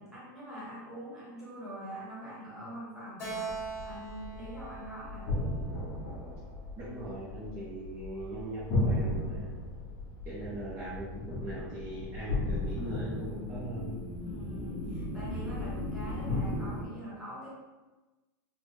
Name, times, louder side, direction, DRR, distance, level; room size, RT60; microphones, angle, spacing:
voice 1, 0.0-5.3 14.2-17.5, equal, 5° right, -10 dB, 0.9 m, -44 dB
Keyboard (musical), 3.2-6.6, right 4 dB, 25° left, 1.3 m, -42 dB
sound 1, 3.5-16.9, left 1 dB, 60° left, 0.9 m, -35 dB
voice 2, 6.8-9.5 10.2-14.1, right 1 dB, 20° right, -8 dB, 0.5 m, -40 dB
3.2 x 2.0 x 3.0 m, 1.2 s
supercardioid pair, 175°, 11 cm